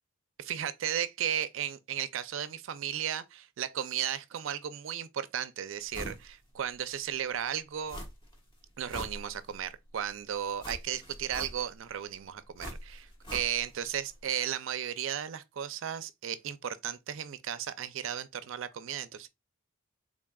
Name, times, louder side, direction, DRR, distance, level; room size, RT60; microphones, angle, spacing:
voice 1, 0.4-8.0 8.8-19.3, right 9 dB, 65° right, 0.4 m, -35 dB
sound 1, 5.9-6.3 6.6-6.7 7.9-8.4 8.7-9.7 10.6-11.9 12.6-13.8 14.1-14.2, equal, 25° left, 1.1 m, -42 dB
3.7 x 3.6 x 2.2 m
head